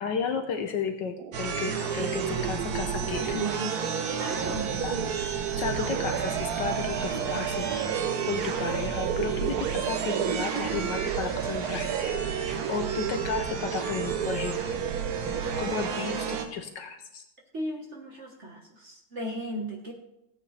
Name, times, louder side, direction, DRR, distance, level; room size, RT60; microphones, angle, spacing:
voice 1, 0.0-3.4 4.8-8.0 8.3-12.1 12.7-14.6 15.6-17.2, left 5 dB, 65° left, 6 dB, 1.3 m, -33 dB
sound 1, 1.2-16.4, right 10 dB, 90° right, 0.8 m, -34 dB
sound 2, 1.3-16.5, right 6 dB, 70° right, 1.8 m, -32 dB
voice 2, 3.0-3.8 4.1-4.8 17.5-19.9, right 1 dB, 40° right, 1 dB, 1.4 m, -36 dB
16.5 x 8.4 x 3.3 m, 0.85 s
omnidirectional pair, 2.3 m